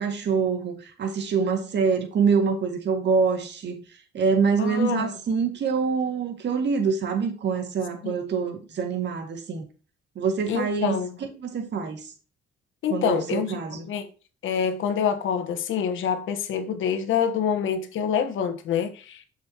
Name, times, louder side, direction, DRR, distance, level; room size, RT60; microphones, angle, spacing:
voice 1, 0.0-3.8 4.1-9.6 10.2-11.0 11.4-12.0 12.9-13.8, right 5 dB, 60° right, 2.0 m, -25 dB
voice 2, 4.6-5.1 8.0-8.2 10.5-11.1 12.8-14.1 14.4-19.2, left 7 dB, 80° left, 1.2 m, -26 dB
7.0 x 6.5 x 2.9 m
cardioid pair, 90°, 20 cm